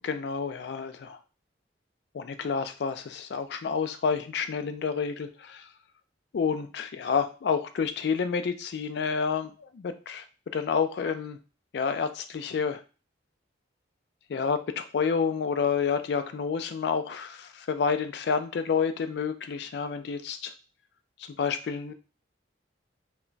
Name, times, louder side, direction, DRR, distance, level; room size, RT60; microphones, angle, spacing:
voice 1, 0.0-1.2 2.1-5.7 6.3-10.2 10.5-11.4 11.7-12.8 14.3-20.5 21.4-21.9, left 6 dB, 60° left, 10 dB, 0.3 m, -29 dB
2.2 x 2.1 x 3.8 m, 0.34 s
head